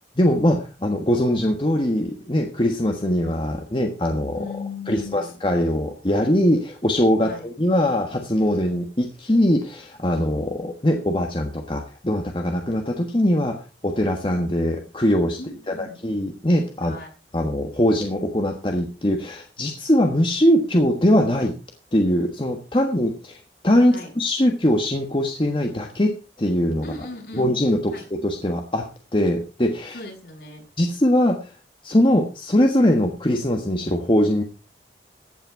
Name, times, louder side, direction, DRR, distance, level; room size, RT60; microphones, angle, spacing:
voice 1, 0.2-4.4 4.9-13.6 13.8-15.4 15.7-16.9 17.3-21.5 21.9-23.4 23.6-26.8 27.3-27.9 28.2-28.9 29.1-30.0 30.8-31.4 31.8-34.4, left 1 dB, 30° left, 3 dB, 1.4 m, -21 dB
voice 2, 4.3-5.4 7.2-7.5 15.4-16.0 16.8-17.1 23.9-24.1 26.8-27.5 27.9-28.1 29.9-30.7, left 3 dB, 65° left, 0 dB, 6.9 m, -37 dB
15.0 x 9.0 x 4.8 m, 0.33 s
head